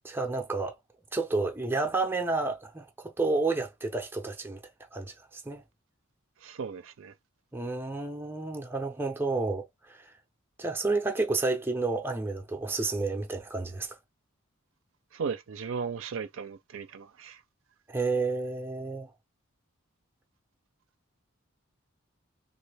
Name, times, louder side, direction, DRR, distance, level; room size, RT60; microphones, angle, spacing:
voice 1, 0.0-0.8 1.1-4.6 4.9-5.6 7.5-10.1 10.6-14.0 17.9-19.1, right 3 dB, 10° right, 0.5 m, -30 dB
voice 2, 6.4-7.1 15.1-17.4, right 5 dB, 65° right, 0.5 m, -36 dB
3.1 x 2.4 x 3.3 m
head